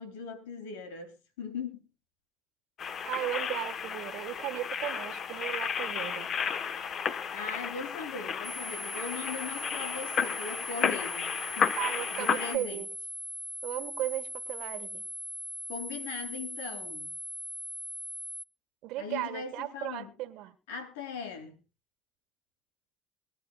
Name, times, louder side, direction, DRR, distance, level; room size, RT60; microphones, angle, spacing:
voice 1, 0.0-1.9 7.3-11.3 11.6-11.8 12.1-12.8 15.7-17.1 19.0-20.1 20.7-21.5, left 5 dB, 90° left, 3.2 m, -39 dB
sound 1, 2.8-12.6, left 7 dB, 50° left, 1.1 m, -33 dB
voice 2, 3.0-6.3 11.7-12.9 13.6-15.0 18.8-20.6, right 15 dB, 70° right, 1.5 m, -36 dB
sound 2, 8.4-18.4, equal, 5° left, 0.6 m, -40 dB
24.5 x 11.0 x 2.3 m
supercardioid pair, 75°, 0 cm